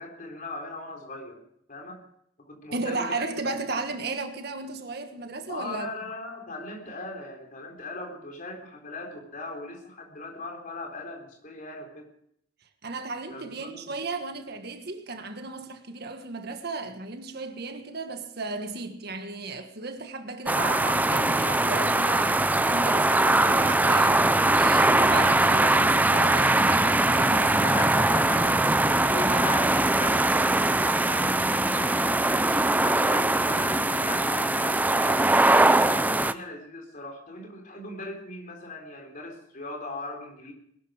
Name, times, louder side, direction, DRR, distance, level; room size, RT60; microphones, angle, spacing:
voice 1, 0.0-1.4 1.7-2.0 2.4-3.6 5.5-12.1 13.3-14.0 27.5-35.3 35.8-40.5, left 2 dB, 45° left, 3.8 m, -39 dB
voice 2, 2.7-5.9 12.8-24.3 24.5-28.1, right 3 dB, 60° right, 1.6 m, -34 dB
sound 1, 20.5-36.3, right 2 dB, 10° right, 0.5 m, -22 dB
20.5 x 12.5 x 5.1 m
head